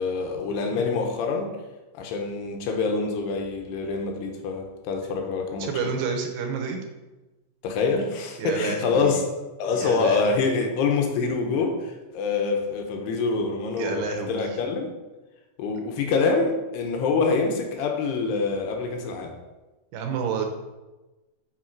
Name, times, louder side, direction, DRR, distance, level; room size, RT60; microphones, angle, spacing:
voice 1, 0.0-1.5 1.9-5.9 7.6-9.2 9.6-14.9 15.6-19.3, left 4 dB, 80° left, 3 dB, 2.8 m, -26 dB
voice 2, 5.6-6.8 8.4-9.2 9.7-10.3 13.8-14.6 19.9-20.5, right 5 dB, 75° right, 4 dB, 3.0 m, -29 dB
6.5 x 6.4 x 4.5 m, 1.1 s
omnidirectional pair, 4.8 m